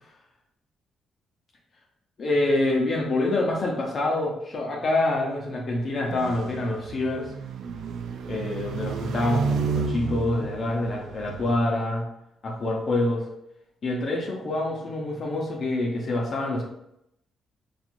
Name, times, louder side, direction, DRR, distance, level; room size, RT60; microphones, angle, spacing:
voice 1, 2.2-7.3 8.3-12.1 12.4-13.2 13.8-16.6, left 2 dB, 50° left, -1 dB, 0.8 m, -26 dB
sound 1, 6.1-11.6, right 5 dB, 75° right, 0.3 m, -31 dB
4.4 x 2.5 x 2.6 m, 0.80 s
cardioid pair, 90°, 0 cm